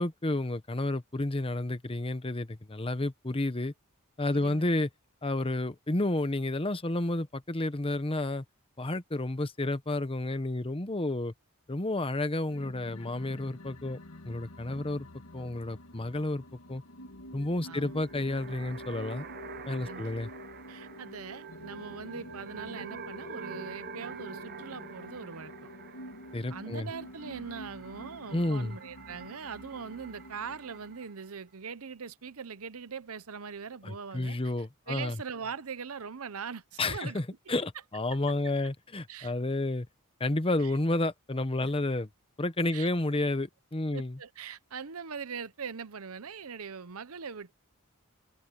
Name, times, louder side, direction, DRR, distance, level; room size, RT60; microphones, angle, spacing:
voice 1, 0.0-3.7 4.2-4.9 5.2-8.4 8.8-11.3 11.7-14.0 14.2-15.1 15.3-16.4 16.7-16.8 17.3-19.2 19.7-20.3 26.3-26.9 28.3-28.8 33.8-35.2 36.8-39.9 40.2-42.1 42.4-44.2, left 2 dB, 25° left, 1.0 m, -31 dB
voice 2, 4.3-4.6 17.6-17.9 19.8-20.1 20.7-25.7 26.5-34.4 34.9-37.2 39.1-39.3 40.6-40.7 41.6-41.7 42.7-42.9 43.9-47.5, right 6 dB, 75° right, 0.9 m, -41 dB
sound 1, 12.5-31.1, left 1 dB, 85° left, 1.7 m, -47 dB
sound 2, 17.9-31.3, right 7 dB, 45° right, 0.9 m, -48 dB
head